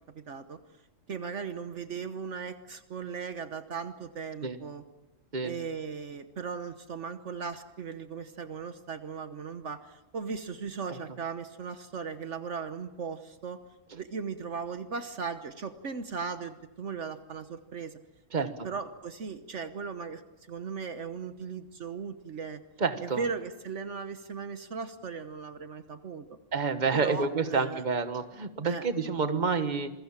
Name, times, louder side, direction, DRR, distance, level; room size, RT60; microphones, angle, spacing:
voice 1, 0.1-0.6 1.1-4.8 5.4-13.6 13.9-18.0 18.6-20.2 20.5-22.6 23.0-26.2 26.9-27.8 28.6-28.9, right 5 dB, 65° right, 10 dB, 1.4 m, -37 dB
voice 2, 22.8-23.2 26.5-29.9, right 5 dB, 35° right, 9 dB, 1.5 m, -28 dB
28.0 x 22.0 x 7.3 m, 0.99 s
omnidirectional pair, 1.3 m